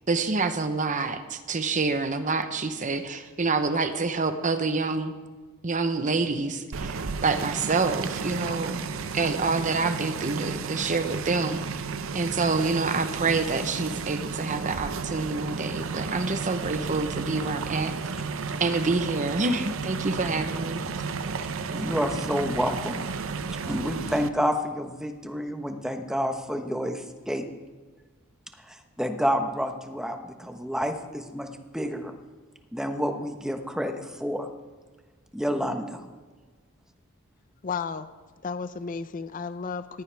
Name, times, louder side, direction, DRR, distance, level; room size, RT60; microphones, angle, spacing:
voice 1, 0.1-5.1 5.6-8.8 9.1-11.7 12.1-17.9 18.6-20.8, right 3 dB, 35° right, 9 dB, 0.9 m, -27 dB
sound 1, 6.7-24.3, right 5 dB, 65° right, 0.7 m, -33 dB
voice 2, 21.7-23.0 23.6-27.4 28.7-32.1 32.7-34.5 35.3-36.0, equal, 5° right, 5 dB, 1.1 m, -29 dB
voice 3, 37.6-38.1 38.4-40.0, left 5 dB, 40° left, 12 dB, 0.5 m, -33 dB
18.5 x 15.5 x 3.5 m, 1.4 s
head